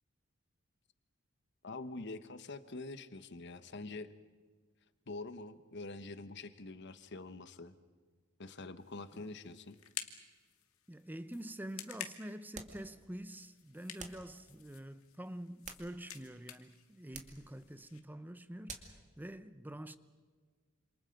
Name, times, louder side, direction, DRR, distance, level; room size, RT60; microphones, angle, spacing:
voice 1, 1.6-4.1 5.1-7.7 8.4-9.8, left 3 dB, 55° left, 1.1 m, -45 dB
sound 1, 8.8-18.0, left 10 dB, 85° left, 2.1 m, -51 dB
voice 2, 10.9-20.0, right 1 dB, 10° right, 0.6 m, -46 dB
sound 2, 12.5-12.9 14.0-14.3 15.4-16.3 17.1-17.4 18.7-19.0, right 5 dB, 35° right, 2.3 m, -49 dB
27.5 x 27.5 x 5.3 m
head